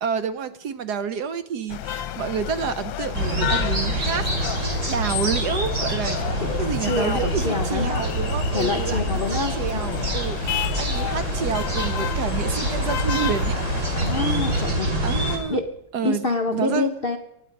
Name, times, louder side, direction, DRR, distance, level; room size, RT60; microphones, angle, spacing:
voice 1, 0.0-13.6 15.0-15.6 15.9-16.9, right 7 dB, 65° right, 11 dB, 1.1 m, -29 dB
sound 1, 1.7-14.7, left 12 dB, 75° left, 1.4 m, -32 dB
sound 2, 3.1-15.4, right 1 dB, 40° right, 3.0 m, -26 dB
voice 2, 6.4-8.0 8.5-10.0 14.0-14.9 15.5-15.6 16.0-17.2, left 3 dB, 50° left, 4 dB, 0.6 m, -26 dB
23.5 x 9.3 x 5.2 m, 0.80 s
omnidirectional pair, 2.1 m